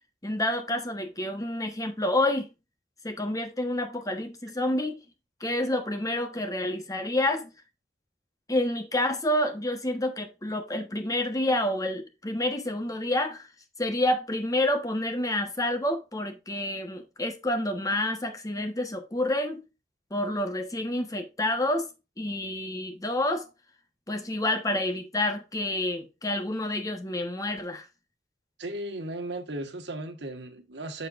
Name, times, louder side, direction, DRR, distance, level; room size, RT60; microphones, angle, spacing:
voice 1, 0.2-2.5 3.0-5.0 5.4-7.5 8.5-13.5 13.8-19.6 20.1-21.9 22.2-23.5 24.1-27.9, left 1 dB, 20° left, 1.1 m, -28 dB
voice 2, 28.6-31.1, right 1 dB, 80° right, 1.4 m, -36 dB
7.7 x 6.7 x 2.5 m
head